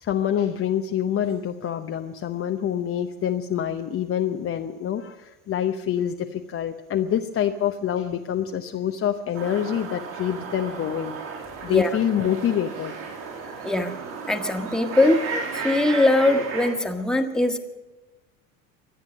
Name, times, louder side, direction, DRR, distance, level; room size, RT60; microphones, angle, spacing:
voice 1, 0.0-11.2 11.6-12.9, left 9 dB, 30° left, 4 dB, 0.9 m, -26 dB
sound 1, 9.3-16.7, right 4 dB, 60° right, 6.0 m, -34 dB
voice 2, 14.3-15.2 15.5-17.6, left 2 dB, ahead, 5 dB, 1.6 m, -21 dB
24.5 x 9.2 x 6.3 m, 1.1 s
hypercardioid pair, 75°, 41 cm